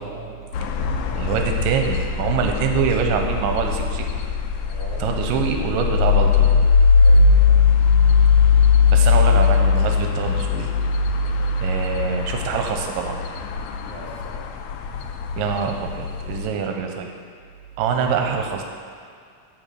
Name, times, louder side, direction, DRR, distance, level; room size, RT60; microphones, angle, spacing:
voice 1, 0.0-1.5 4.7-5.3 6.9-7.7 9.3-9.4 11.3-11.6 13.9-14.5 14.8-15.1 18.0-18.3, right 3 dB, 50° right, -3 dB, 2.2 m, -40 dB
sound 1, 0.5-16.5, left 5 dB, 85° left, 1.7 m, -19 dB
voice 2, 1.2-4.1 5.0-6.5 8.9-10.7 11.6-13.2 15.4-17.1 17.8-18.6, right 6 dB, 85° right, 3 dB, 2.3 m, -24 dB
11.0 x 4.5 x 6.6 m, 2.2 s
omnidirectional pair, 3.9 m